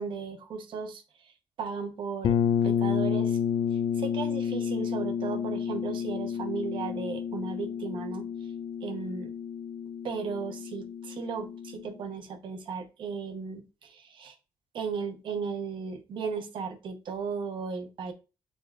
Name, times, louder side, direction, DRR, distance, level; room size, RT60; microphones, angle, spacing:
voice 1, 0.0-1.3 1.6-2.4 2.6-3.4 4.0-8.3 8.8-9.3 10.0-14.3 14.7-18.1, right 5 dB, 70° right, 8 dB, 0.8 m, -35 dB
sound 1, 2.2-11.9, left 8 dB, 70° left, 0.4 m, -30 dB
6.7 x 3.3 x 2.4 m, 0.30 s
cardioid pair, 95°, 9 cm